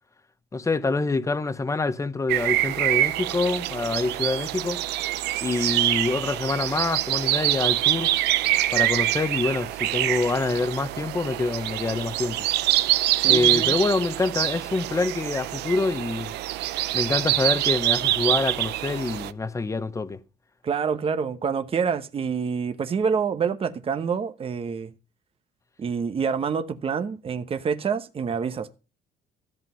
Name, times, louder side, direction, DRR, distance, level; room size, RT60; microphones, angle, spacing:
voice 1, 0.5-4.8 5.4-8.1 8.7-12.5 13.3-16.3 16.9-20.2, left 3 dB, 20° left, 1.0 m, -26 dB
sound 1, 2.3-19.3, right 15 dB, 85° right, 0.7 m, -25 dB
voice 2, 13.2-13.7 20.6-24.9 25.8-28.7, right 6 dB, 35° right, 1.0 m, -27 dB
14.0 x 7.4 x 5.6 m
cardioid pair, 110°, 17 cm